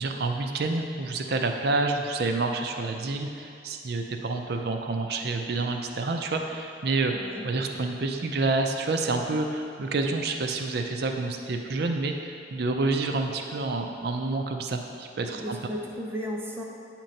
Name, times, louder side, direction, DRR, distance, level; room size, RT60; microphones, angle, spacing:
voice 1, 0.0-15.6, right 3 dB, 60° right, 4 dB, 0.5 m, -28 dB
voice 2, 7.1-7.5 15.3-16.6, equal, 15° right, -2 dB, 0.6 m, -34 dB
8.5 x 3.0 x 5.2 m, 2.6 s
head